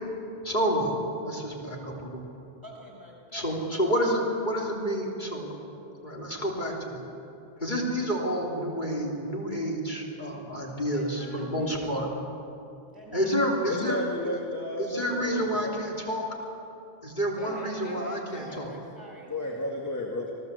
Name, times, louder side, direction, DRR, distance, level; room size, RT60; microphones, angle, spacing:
voice 1, 0.4-2.2 3.3-5.5 6.0-7.1 7.6-12.1 13.1-14.0 14.8-16.2 17.0-18.7, equal, 45° left, -2 dB, 3.4 m, -29 dB
voice 2, 2.6-3.6 10.9-12.1 12.9-13.6 17.4-19.6, right 1 dB, 20° right, -1 dB, 6.3 m, -44 dB
voice 3, 13.7-15.8 19.3-20.3, left 2 dB, 15° left, -1 dB, 2.0 m, -32 dB
27.5 x 17.5 x 8.1 m, 2.8 s
omnidirectional pair, 1.1 m